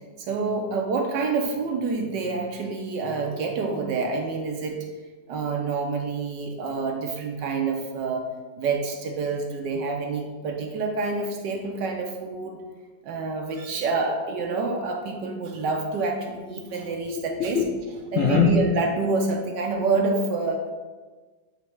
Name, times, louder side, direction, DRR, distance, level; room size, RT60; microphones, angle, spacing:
voice 1, 0.0-4.8 5.3-8.2 8.6-12.6 13.0-17.6 18.1-20.7, right 4 dB, 70° right, 2 dB, 1.3 m, -27 dB
voice 2, 16.5-18.5, left 7 dB, 65° left, -1 dB, 0.8 m, -25 dB
8.6 x 3.1 x 4.5 m, 1.3 s
omnidirectional pair, 2.0 m